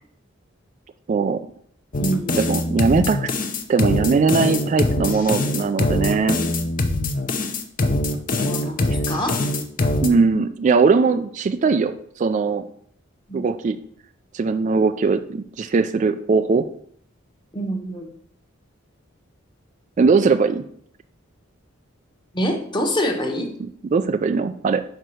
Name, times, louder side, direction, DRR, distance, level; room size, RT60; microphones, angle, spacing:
voice 1, 1.1-1.4 2.3-3.3 3.7-6.4 10.0-12.6 13.3-13.8 14.3-16.7 20.0-20.6 23.6-24.8, right 4 dB, 40° right, 10 dB, 0.3 m, -20 dB
sound 1, 1.9-10.1, left 2 dB, 45° left, 0.7 m, -23 dB
voice 2, 2.0-2.4 8.4-9.4 13.3-13.4 17.5-18.1 22.3-23.5, equal, 25° left, 3 dB, 1.1 m, -25 dB
5.1 x 4.6 x 6.2 m, 0.64 s
head